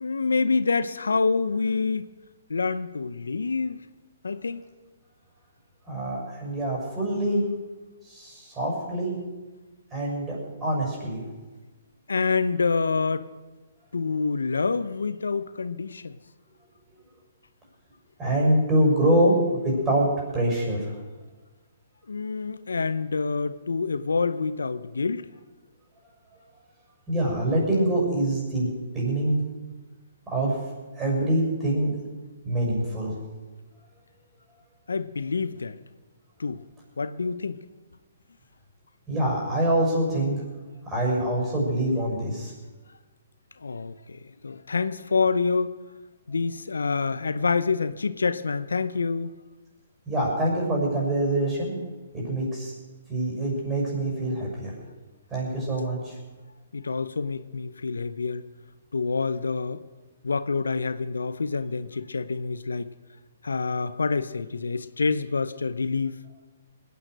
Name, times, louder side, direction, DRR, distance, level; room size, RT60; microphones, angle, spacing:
voice 1, 0.0-2.1 2.5-3.8 4.2-4.6 12.1-13.3 13.9-16.2 22.1-25.3 34.9-35.8 36.4-36.6 37.0-37.6 43.6-45.7 46.3-49.4 56.7-58.4 58.9-59.8 60.2-62.9 63.4-66.2, left 4 dB, 85° left, 0.7 m, -27 dB
voice 2, 5.9-7.4 8.0-9.1 9.9-11.2 18.2-21.0 27.1-28.7 28.9-29.4 30.3-30.6 31.0-32.0 32.4-33.2 39.1-40.4 40.8-42.5 50.1-51.8 52.1-52.7 53.1-54.7 55.3-56.2, right 1 dB, 15° right, 6.7 m, -25 dB
20.5 x 9.4 x 6.5 m
hypercardioid pair, 135°, 0 cm